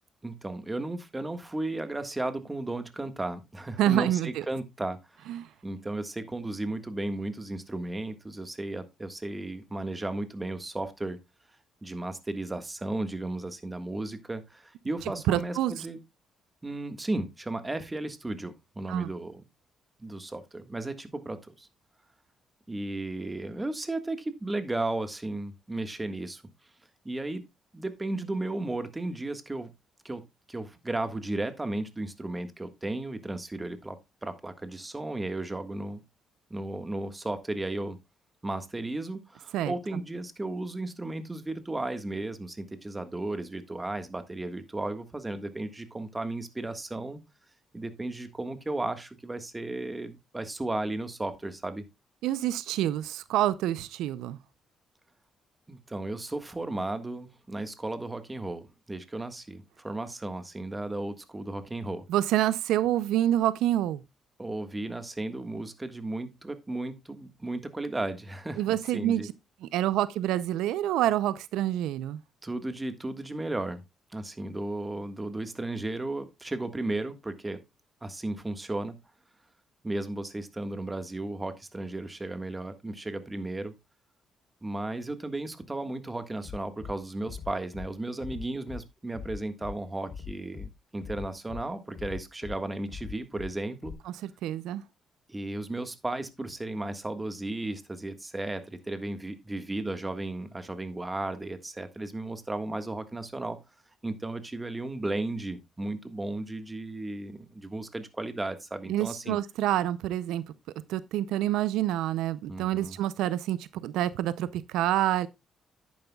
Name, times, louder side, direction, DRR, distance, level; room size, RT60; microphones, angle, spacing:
voice 1, 0.2-11.2 11.8-16.0 16.6-19.4 20.0-21.7 22.7-26.4 27.0-27.4 27.7-29.7 30.0-36.0 36.5-38.0 38.4-47.2 47.7-51.8 55.7-62.0 64.4-69.3 72.4-73.8 74.1-77.6 78.0-79.0 79.8-83.7 84.6-93.9 95.3-103.6 104.0-109.4 112.5-113.0, right 2 dB, 15° right, 1.5 m, -34 dB
voice 2, 3.8-4.4 5.3-5.5 15.3-15.7 18.9-19.1 39.5-39.7 52.2-54.4 62.1-64.0 68.6-69.2 69.6-72.2 94.2-94.8 108.9-110.4 110.9-115.3, right 13 dB, 90° right, 0.5 m, -27 dB
Bass drum, 86.4-86.9 87.3-87.9 88.2-88.8 89.1-89.7 90.1-90.7 91.0-91.6 91.9-92.6 92.9-93.5 93.8-93.9, left 6 dB, 60° left, 3.3 m, -40 dB
10.5 x 9.4 x 2.3 m
cardioid pair, 90°, 0 cm